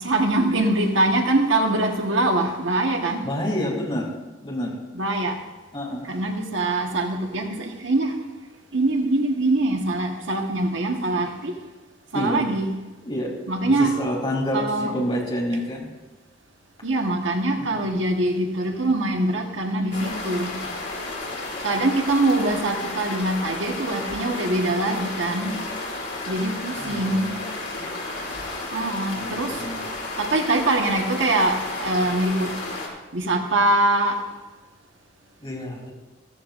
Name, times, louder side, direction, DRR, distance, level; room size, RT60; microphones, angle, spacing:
voice 1, 0.0-3.2 4.9-5.4 6.1-8.2 8.7-11.5 12.1-12.7 13.5-14.0 14.5-15.0 16.8-20.6 21.6-25.6 26.3-27.3 28.7-29.6 30.2-32.5 33.1-34.2, right 2 dB, 80° right, 2 dB, 1.5 m, -23 dB
voice 2, 3.2-4.1 4.4-4.8 5.7-6.1 12.1-12.5 13.0-13.3 13.6-15.9 17.6-17.9 26.8-27.2 29.2-29.8 35.4-35.9, equal, 30° left, -4 dB, 3.5 m, -28 dB
sound 1, 19.9-32.9, left 2 dB, 60° left, 3.2 m, -32 dB
14.5 x 14.0 x 2.6 m, 1.2 s
head